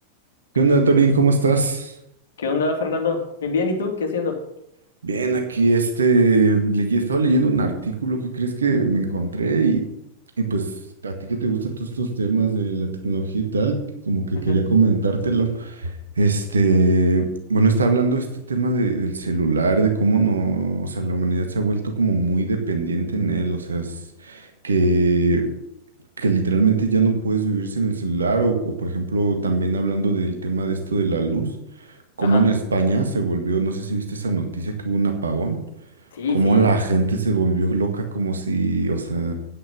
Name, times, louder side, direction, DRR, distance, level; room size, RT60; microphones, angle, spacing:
voice 1, 0.6-1.9 5.0-9.8 10.4-10.7 11.0-13.8 14.1-25.5 26.2-31.5 31.8-35.6 36.3-39.3, right 3 dB, 70° right, 4 dB, 1.8 m, -21 dB
voice 2, 2.4-4.4 14.3-14.6 32.2-32.4 36.1-36.7, left 4 dB, 65° left, 3 dB, 2.8 m, -25 dB
9.8 x 9.4 x 7.2 m, 0.81 s
figure-of-eight pair, 90°, 0 cm